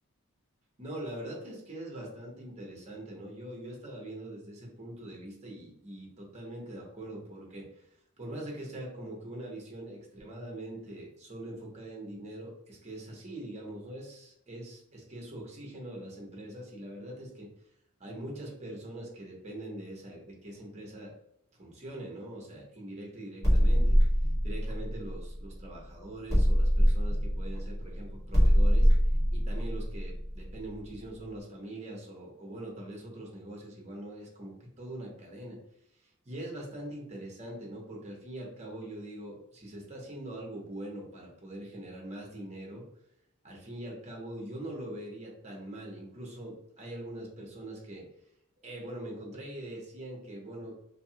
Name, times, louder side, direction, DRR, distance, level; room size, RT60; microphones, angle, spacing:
voice 1, 0.8-7.9 8.2-17.5 18.0-21.1 21.6-24.0 24.4-28.9 29.3-35.6 36.2-42.8 43.4-48.1 48.6-50.8, right 1 dB, 30° right, -1 dB, 0.8 m, -42 dB
sound 1, 23.4-25.8 26.3-31.0, equal, 15° left, 1.2 m, -24 dB
2.7 x 2.3 x 2.7 m, 0.78 s
head